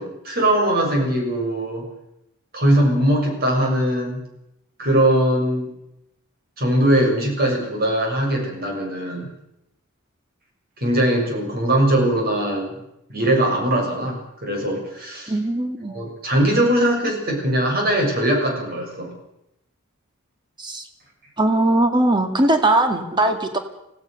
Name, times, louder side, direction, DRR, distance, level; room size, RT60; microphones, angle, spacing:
voice 1, 0.0-1.8 2.5-4.2 4.8-5.7 6.6-9.3 10.8-12.7 13.1-15.3 15.9-19.1, right 1 dB, 45° right, 1 dB, 6.7 m, -20 dB
voice 2, 15.3-15.9 20.6-20.9 21.4-23.6, right 2 dB, 20° right, 6 dB, 2.1 m, -19 dB
25.0 x 16.5 x 6.7 m, 0.84 s
head